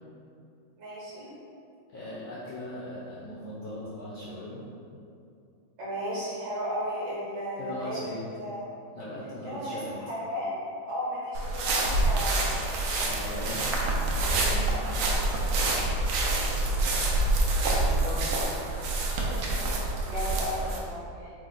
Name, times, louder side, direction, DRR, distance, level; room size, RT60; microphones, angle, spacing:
voice 1, 0.8-1.3 5.8-8.0 8.4-8.7 9.4-10.5 10.9-12.4 19.5-19.8 20.0-21.3, equal, 60° right, -8 dB, 1.7 m, -34 dB
voice 2, 1.9-4.6 7.6-8.2 8.9-9.9 12.9-13.8 14.3-14.7 15.0-15.3 17.8-18.4, left 1 dB, 70° left, -8 dB, 0.9 m, -39 dB
sound 1, 11.3-20.8, right 2 dB, 80° right, 1.4 m, -27 dB
4.6 x 2.0 x 3.9 m, 2.5 s
omnidirectional pair, 2.3 m